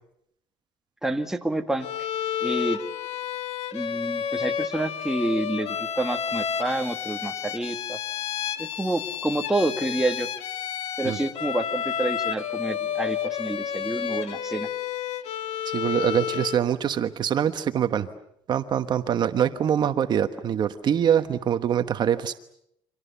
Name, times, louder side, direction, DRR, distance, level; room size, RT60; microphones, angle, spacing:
voice 1, 1.0-2.1 2.4-2.8 3.7-8.0 8.6-10.3 11.0-14.7, right 1 dB, 5° right, 4 dB, 1.8 m, -28 dB
Bowed string instrument, 1.8-16.7, left 9 dB, 75° left, 1.9 m, -31 dB
voice 2, 15.6-18.1 18.5-22.3, right 9 dB, 45° right, 8 dB, 1.2 m, -24 dB
29.5 x 25.5 x 7.0 m, 0.74 s
cardioid pair, 145°, 11 cm